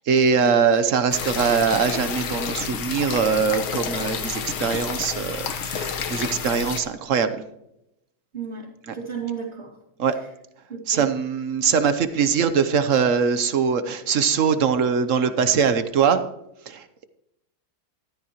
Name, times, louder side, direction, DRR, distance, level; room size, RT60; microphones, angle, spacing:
voice 1, 0.1-7.3 8.9-9.0 10.0-10.1 10.9-16.2 16.7-17.1, right 6 dB, 60° right, 10 dB, 0.9 m, -22 dB
sound 1, 1.1-6.8, left 6 dB, 90° left, 2.0 m, -30 dB
voice 2, 8.3-8.7 8.9-9.7 10.7-11.1, right 6 dB, 30° right, -7 dB, 2.8 m, -33 dB
14.5 x 12.5 x 3.0 m, 0.82 s
omnidirectional pair, 2.2 m